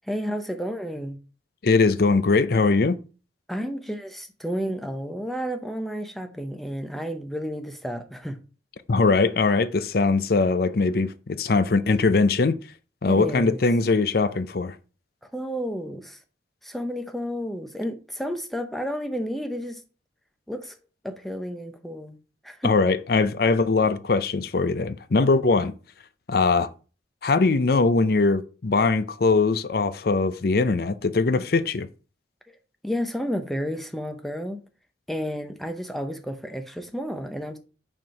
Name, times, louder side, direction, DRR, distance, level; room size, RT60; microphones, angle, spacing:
voice 1, 0.1-1.2 3.5-8.4 13.1-13.6 15.3-16.2 16.6-19.8 20.5-20.8 21.0-22.2 22.4-22.7 32.8-34.6 35.1-37.6, equal, ahead, 0.8 m, -31 dB
voice 2, 1.6-3.0 8.9-12.5 13.0-14.7 22.6-25.7 26.3-26.7 27.2-31.9, left 3 dB, 55° left, 0.5 m, -21 dB
6.2 x 4.5 x 5.6 m
head